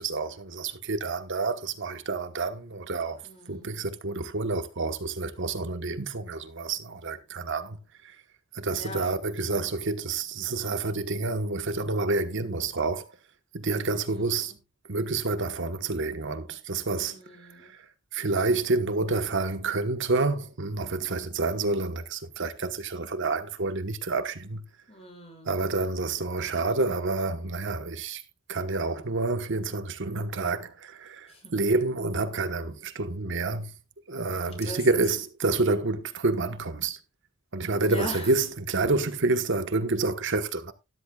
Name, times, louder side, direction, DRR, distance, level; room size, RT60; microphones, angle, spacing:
voice 1, 0.0-3.2 3.5-7.8 8.0-8.1 8.5-13.1 13.5-14.5 14.9-17.2 17.6-17.8 18.1-24.6 25.5-28.2 28.5-33.7 34.1-37.0 37.5-40.7, right 3 dB, 65° right, 1.2 m, -28 dB
voice 2, 3.2-3.9 8.7-9.2 13.7-14.6 17.0-17.7 21.3-21.6 24.9-25.5 28.8-29.2 31.3-31.6 34.3-35.0 37.8-38.3, left 1 dB, 30° left, 6.1 m, -42 dB
13.0 x 13.0 x 2.3 m
head